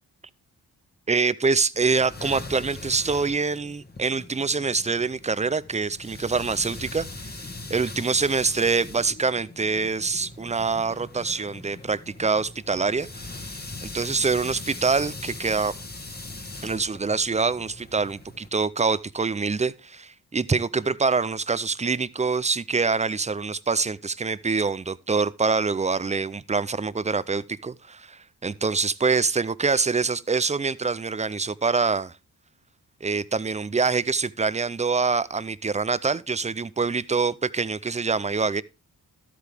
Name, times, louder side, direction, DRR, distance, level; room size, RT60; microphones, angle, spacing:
voice 1, 1.1-7.4 7.7-15.7 16.6-32.2 33.0-38.6, right 4 dB, 20° right, 0.4 m, -25 dB
sound 1, 1.7-18.5, left 2 dB, 25° left, 1.4 m, -41 dB
12.5 x 8.3 x 3.4 m
wide cardioid pair, 95°, 37 cm